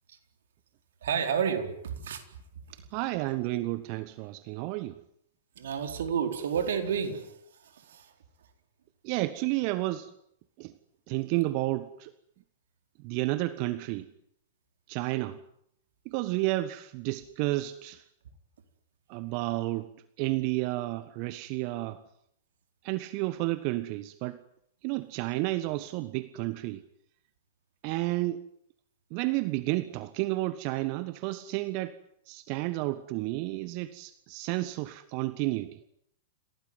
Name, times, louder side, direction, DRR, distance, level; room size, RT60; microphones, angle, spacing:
voice 1, 1.0-2.2 5.6-7.3 7.6-8.1, right 7 dB, 65° right, 4.4 m, -30 dB
voice 2, 2.9-5.0 9.0-10.1 10.6-10.7 11.1-12.1 13.0-14.1 14.9-15.4 16.0-18.0 19.1-19.9 20.2-22.0 22.8-24.4 24.8-26.8 27.8-28.4 29.1-32.0 32.3-35.8, right 19 dB, 45° right, 1.3 m, -31 dB
28.0 x 18.5 x 9.7 m
figure-of-eight pair, 100°, 0 cm